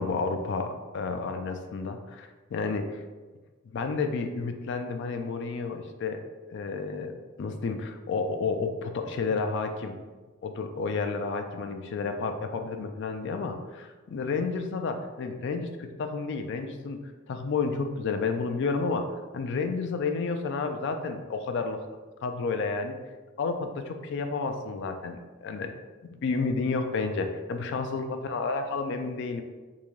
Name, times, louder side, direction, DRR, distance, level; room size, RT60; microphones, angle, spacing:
voice 1, 0.0-3.0 3.7-6.2 6.5-10.0 10.4-17.0 17.3-19.1 19.3-21.8 22.2-23.0 23.4-25.7 26.2-29.4, left 4 dB, 50° left, 6 dB, 0.3 m, -31 dB
3.6 x 2.6 x 3.1 m, 1.3 s
head